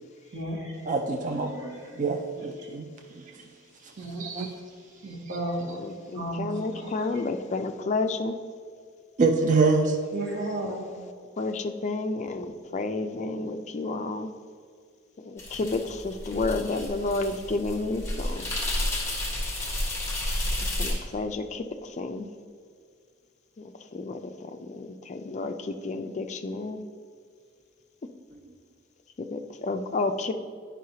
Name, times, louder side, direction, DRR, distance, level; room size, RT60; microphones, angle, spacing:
voice 1, 0.3-0.7 1.4-1.7 4.0-4.2 5.0-5.6 6.1-6.5 6.8-6.9 10.1-11.1, right 1 dB, 60° right, -3 dB, 1.7 m, -33 dB
voice 2, 0.9-1.5 2.0-2.9 4.2-4.5 9.2-10.0, right 4 dB, 40° right, 4 dB, 0.4 m, -24 dB
voice 3, 5.6-8.4 10.6-10.7 11.4-14.3 15.2-18.5 20.8-22.3 23.6-23.7 23.9-26.8 29.2-30.3, left 3 dB, 35° left, 6 dB, 0.4 m, -31 dB
sound 1, 15.4-20.9, left 1 dB, 15° left, 1.2 m, -31 dB
9.1 x 5.6 x 2.8 m, 2.1 s
head